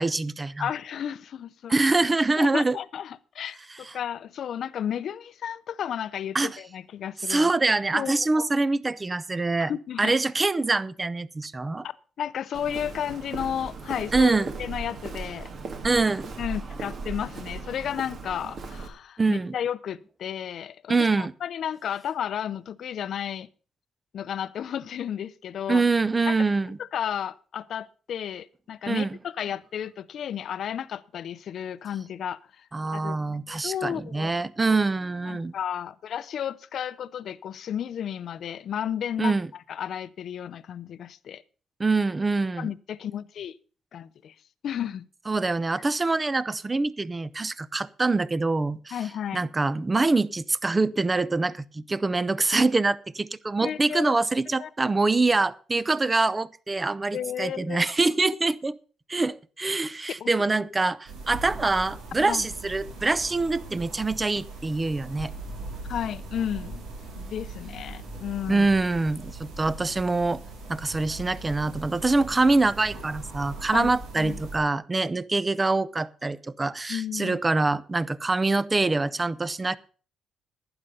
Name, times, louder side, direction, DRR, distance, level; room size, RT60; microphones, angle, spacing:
voice 1, 0.0-0.7 1.7-2.8 6.3-6.5 7.2-9.7 10.0-11.8 14.1-14.5 15.8-16.4 19.2-19.6 20.9-21.3 25.7-26.8 28.9-29.2 32.7-35.5 39.2-39.5 41.8-42.7 45.3-49.0 49.3-58.8 59.1-65.3 68.5-70.4 70.7-79.8, right 3 dB, 25° right, 19 dB, 0.6 m, -25 dB
voice 2, 0.6-1.7 2.4-7.5 7.9-8.5 9.6-10.2 11.8-15.5 16.4-23.5 24.1-25.8 26.3-26.4 26.8-33.2 33.5-34.3 35.3-39.3 39.7-41.4 42.6-43.6 43.9-44.3 44.6-45.1 48.9-49.5 53.6-54.2 54.6-54.7 57.1-57.9 60.2-60.3 62.2-62.4 65.9-66.8 67.2-68.7 73.7-73.9 74.2-74.4 76.9-77.4, left 9 dB, 65° left, 17 dB, 0.6 m, -33 dB
Walk footsteps, 12.5-18.9, right 4 dB, 55° right, 2.2 m, -37 dB
sound 1, 61.1-74.6, right 2 dB, 85° right, 4.0 m, -40 dB
12.0 x 9.8 x 5.4 m, 0.39 s
cardioid pair, 90°, 0 cm